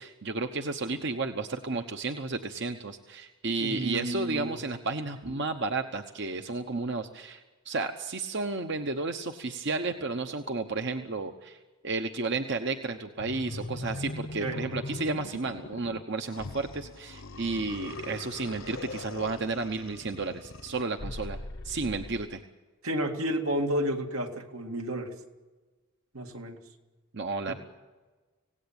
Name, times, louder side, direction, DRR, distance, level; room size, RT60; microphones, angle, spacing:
voice 1, 0.0-11.6 11.8-21.4 21.6-22.4 27.1-27.5, right 3 dB, 55° right, 6 dB, 1.0 m, -32 dB
voice 2, 3.6-4.6 14.4-14.7 22.8-25.2 26.1-26.6 27.5-27.6, right 1 dB, 85° right, 3 dB, 2.3 m, -31 dB
sound 1, 13.2-22.3, left 2 dB, 65° left, 1.0 m, -40 dB
26.0 x 17.5 x 8.8 m, 1.3 s
head